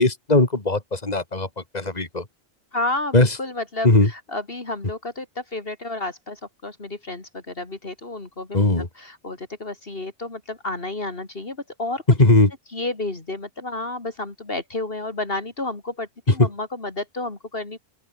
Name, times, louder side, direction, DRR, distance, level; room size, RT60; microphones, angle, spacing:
voice 1, 0.0-1.5 1.7-2.2 3.1-3.3 3.8-4.1 8.5-8.9 12.2-12.5 16.4-16.5, left 2 dB, 35° left, 3.3 m, -18 dB
voice 2, 2.7-12.0 12.7-17.8, left 2 dB, 55° left, 3.1 m, -31 dB
open air
omnidirectional pair, 1.2 m